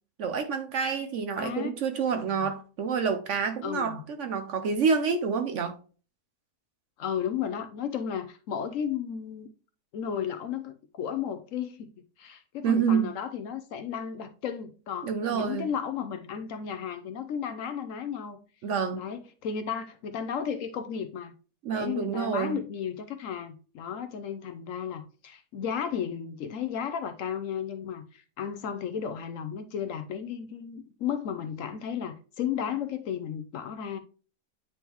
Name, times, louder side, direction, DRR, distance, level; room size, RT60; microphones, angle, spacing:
voice 1, 0.2-5.8 12.6-13.1 15.0-15.7 18.6-19.1 21.6-22.6, right 6 dB, 60° right, 0.8 m, -28 dB
voice 2, 1.4-1.7 2.2-2.5 3.6-4.0 7.0-9.5 9.9-11.9 12.2-18.4 18.9-21.3 21.7-34.0, left 8 dB, 65° left, 0.9 m, -34 dB
9.1 x 3.6 x 2.9 m
omnidirectional pair, 1.6 m